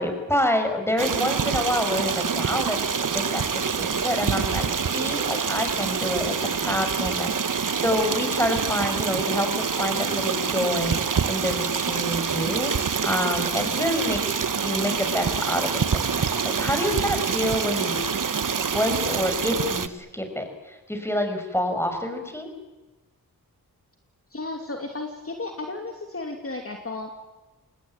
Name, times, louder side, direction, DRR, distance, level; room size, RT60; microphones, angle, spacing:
voice 1, 0.0-2.8 3.1-14.2 14.6-16.2 16.6-18.0 18.7-22.5, left 1 dB, 5° left, 6 dB, 6.2 m, -27 dB
Stream, 1.0-19.9, right 6 dB, 60° right, 1.3 m, -26 dB
voice 2, 24.3-27.1, left 2 dB, 40° left, 3 dB, 3.0 m, -34 dB
27.0 x 19.5 x 9.2 m, 1.1 s
cardioid pair, 50°, 36 cm